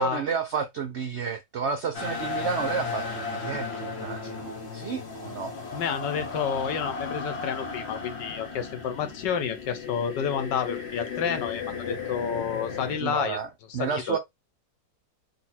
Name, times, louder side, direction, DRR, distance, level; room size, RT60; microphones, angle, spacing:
voice 1, 0.0-5.5 13.0-13.5 13.7-14.2, right 6 dB, 85° right, 0.6 m, -31 dB
sound 1, 1.9-13.0, left 4 dB, 45° left, 0.9 m, -35 dB
voice 2, 5.7-13.4 13.8-14.2, left 7 dB, 75° left, 1.5 m, -30 dB
4.2 x 2.4 x 4.2 m
omnidirectional pair, 2.0 m